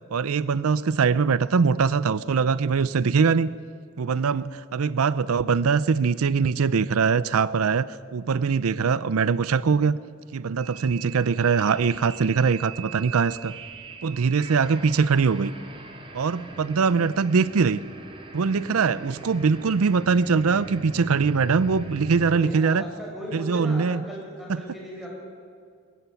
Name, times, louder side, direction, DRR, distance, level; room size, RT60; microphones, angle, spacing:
voice 1, 0.1-3.5 4.0-10.0 10.3-13.5 14.0-15.5 16.1-17.8 18.3-22.8 23.3-24.0 24.5-24.6, right 5 dB, 85° right, 18 dB, 0.5 m, -22 dB
voice 2, 4.1-4.4 14.0-14.5 16.5-16.8 22.1-25.1, equal, ahead, -3 dB, 6.9 m, -38 dB
sound 1, 10.6-22.4, right 3 dB, 25° right, 2.1 m, -41 dB
22.0 x 13.0 x 9.4 m, 2.2 s
head